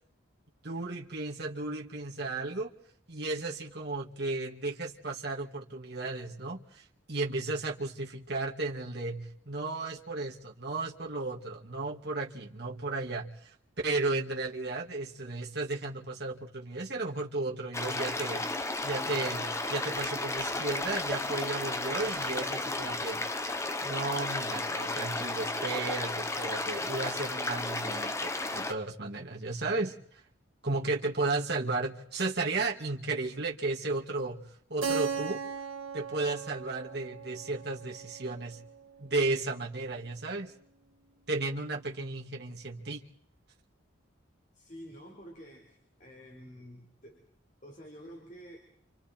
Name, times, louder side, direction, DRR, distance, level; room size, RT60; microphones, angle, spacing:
voice 1, 0.6-2.7 3.1-18.4 18.8-23.2 23.8-30.0 30.6-34.4 34.7-35.4 35.9-38.6 39.0-40.5 41.3-43.0, right 3 dB, 55° right, -2 dB, 2.3 m, -34 dB
sound 1, 17.7-28.7, left 2 dB, 15° left, 1.0 m, -33 dB
Keyboard (musical), 34.8-39.4, right 5 dB, 80° right, 2.0 m, -38 dB
voice 2, 44.5-47.3 47.6-48.6, equal, 40° left, 1 dB, 4.6 m, -49 dB
29.5 x 27.5 x 4.5 m, 0.66 s
head